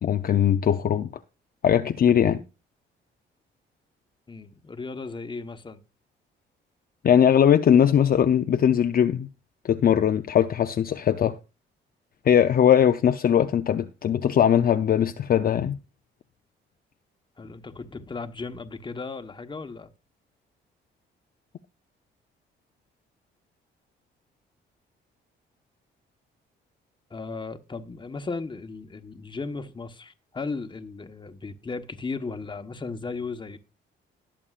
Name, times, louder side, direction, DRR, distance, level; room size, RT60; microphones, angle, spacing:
voice 1, 0.0-1.1 1.6-2.4 7.0-9.3 9.6-11.4 12.2-15.8, left 9 dB, 50° left, 0.6 m, -20 dB
voice 2, 4.3-5.8 17.4-19.9 27.1-33.6, left 4 dB, 25° left, 1.2 m, -36 dB
20.0 x 7.1 x 2.5 m
cardioid pair, 90°, 20 cm